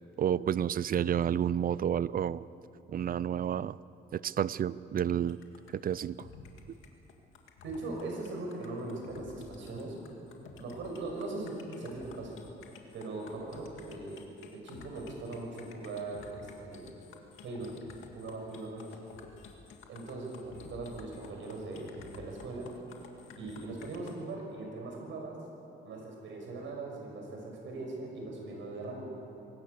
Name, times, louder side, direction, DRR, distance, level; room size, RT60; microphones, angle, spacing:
voice 1, 0.2-2.5 2.9-3.8 4.1-5.4 5.7-6.3, right 9 dB, 45° right, 19 dB, 0.5 m, -30 dB
sound 1, 5.3-24.2, left 5 dB, 85° left, 2.2 m, -52 dB
voice 2, 7.6-10.0 10.6-12.3 12.9-14.2 14.5-16.9 17.4-17.7 18.1-19.0 19.9-22.7 23.3-25.4 25.8-29.1, right 2 dB, 75° right, 0 dB, 6.3 m, -40 dB
24.0 x 18.5 x 6.9 m, 2.9 s
cardioid pair, 90°, 20 cm